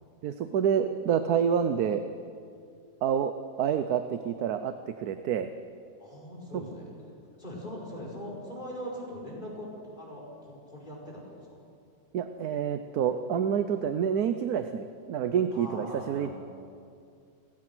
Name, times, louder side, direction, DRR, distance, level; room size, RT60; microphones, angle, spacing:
voice 1, 0.2-2.0 3.0-3.3 3.6-5.5 12.1-16.3, right 8 dB, 90° right, 9 dB, 1.3 m, -28 dB
voice 2, 6.0-6.9 7.4-9.7 9.9-11.5 15.5-16.3, equal, 30° left, -3 dB, 5.4 m, -41 dB
29.5 x 15.5 x 6.1 m, 2.4 s
omnidirectional pair, 1.6 m